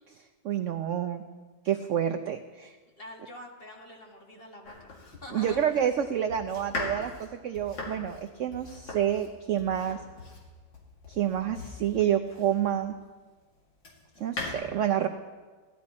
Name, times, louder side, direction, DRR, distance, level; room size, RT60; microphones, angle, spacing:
voice 1, 0.4-1.2 1.6-2.7 5.3-10.0 11.1-12.9 14.2-15.1, right 10 dB, 75° right, 8 dB, 0.7 m, -28 dB
voice 2, 3.0-5.6, left 1 dB, 35° left, 1 dB, 1.7 m, -45 dB
Domestic sounds home sounds, 4.6-12.8 13.4-14.5, left 2 dB, 85° left, 2.8 m, -40 dB
16.5 x 12.0 x 4.2 m, 1.4 s
omnidirectional pair, 1.9 m